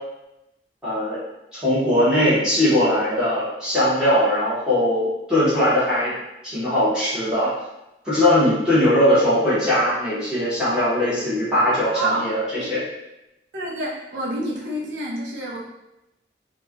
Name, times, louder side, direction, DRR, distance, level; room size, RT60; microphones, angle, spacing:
voice 1, 0.8-1.2 1.5-6.1 6.4-7.5 8.0-12.4 12.7-12.8, left 1 dB, 5° right, -12 dB, 0.8 m, -20 dB
voice 2, 11.9-12.3 12.6-12.7 13.5-15.6, right 1 dB, 90° right, -4 dB, 0.6 m, -28 dB
3.1 x 2.1 x 2.3 m, 0.91 s
head